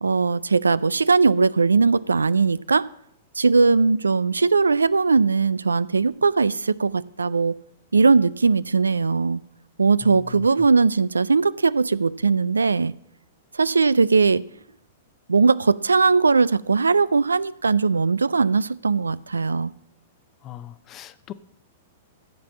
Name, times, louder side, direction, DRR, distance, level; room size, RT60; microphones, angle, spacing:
voice 1, 0.0-2.8 3.4-7.6 7.9-9.4 9.8-12.9 13.5-14.4 15.3-19.7, right 4 dB, 80° right, 20 dB, 0.3 m, -19 dB
voice 2, 10.0-10.5 20.4-21.3, left 13 dB, 30° left, 15 dB, 0.6 m, -40 dB
15.0 x 5.8 x 7.2 m, 0.76 s
figure-of-eight pair, 105°, 0 cm